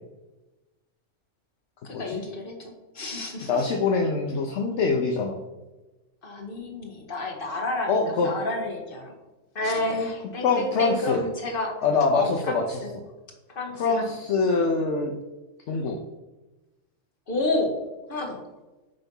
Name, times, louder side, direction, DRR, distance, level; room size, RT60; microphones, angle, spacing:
voice 1, 1.8-3.6 6.2-9.1 9.5-11.7 12.1-12.9 13.5-14.1 17.3-17.7 18.1-18.4, left 2 dB, 45° left, 1 dB, 1.6 m, -30 dB
voice 2, 3.4-5.4 7.9-8.3 10.4-11.2 11.8-12.8 13.7-15.1 15.7-16.0, left 4 dB, 65° left, 2 dB, 1.1 m, -24 dB
9.0 x 3.5 x 5.4 m, 1.1 s
omnidirectional pair, 1.4 m